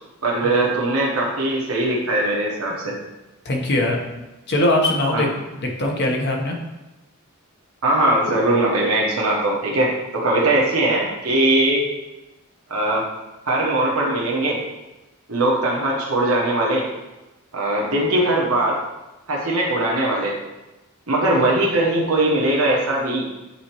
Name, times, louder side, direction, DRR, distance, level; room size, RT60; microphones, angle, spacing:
voice 1, 0.2-2.9 5.1-5.3 7.8-11.8 12.7-13.1 13.4-14.6 15.3-16.8 17.5-18.8 19.3-20.4 21.1-23.3, right 1 dB, 75° right, -3 dB, 1.1 m, -20 dB
voice 2, 3.4-4.0 4.5-5.3 5.6-6.6, left 1 dB, 50° left, 1 dB, 1.0 m, -21 dB
8.5 x 4.3 x 3.0 m, 1.0 s
head